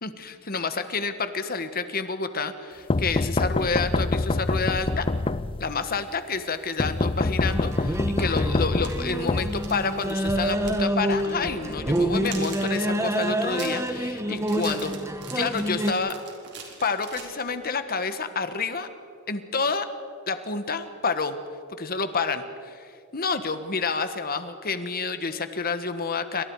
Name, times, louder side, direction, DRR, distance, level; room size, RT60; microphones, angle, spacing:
voice 1, 0.0-5.0 5.6-15.0 15.3-16.1 16.8-18.9 19.3-19.9 20.3-21.4 21.8-26.4, left 4 dB, 45° left, 10 dB, 1.4 m, -29 dB
sound 1, 2.9-5.9 6.8-10.1, left 2 dB, 25° left, 0.4 m, -26 dB
sound 2, 7.5-15.9, equal, 15° right, 1.1 m, -27 dB
sound 3, 7.8-7.9 8.7-10.9 11.1-11.3 11.7-17.8, right 6 dB, 55° right, 4.2 m, -43 dB
28.5 x 25.5 x 4.8 m, 2.4 s
head